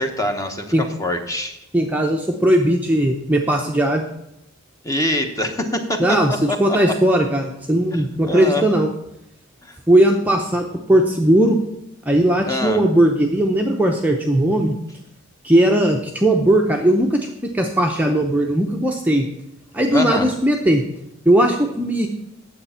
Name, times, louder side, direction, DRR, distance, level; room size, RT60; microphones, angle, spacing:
voice 1, 0.0-1.6 4.8-6.6 7.9-8.7 9.6-9.8 12.4-12.8 19.9-20.3, left 1 dB, 15° left, 5 dB, 1.0 m, -24 dB
voice 2, 1.7-4.0 6.0-8.9 9.9-11.6 12.1-14.8 15.4-19.3 19.7-20.8 21.3-22.1, right 1 dB, 5° right, 1 dB, 0.6 m, -18 dB
9.6 x 7.4 x 5.6 m, 0.86 s
head